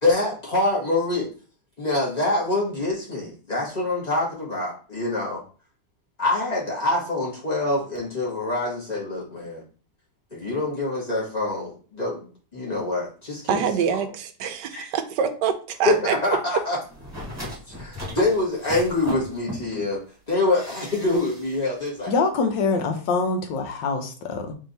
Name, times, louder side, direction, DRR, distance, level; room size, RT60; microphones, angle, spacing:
voice 1, 0.0-1.3 1.8-5.4 6.2-9.6 10.3-13.7 13.9-14.0 14.7-14.9 15.8-16.8 17.7-22.1, left 2 dB, 25° left, 1.6 m, -25 dB
voice 2, 13.5-16.4, right 7 dB, 80° right, 1.2 m, -25 dB
sound 1, 16.9-19.9 20.5-21.6 21.9-22.0, equal, 10° right, 1.4 m, -37 dB
voice 3, 22.1-24.5, left 4 dB, 85° left, 1.5 m, -24 dB
3.7 x 3.5 x 3.9 m
omnidirectional pair, 1.9 m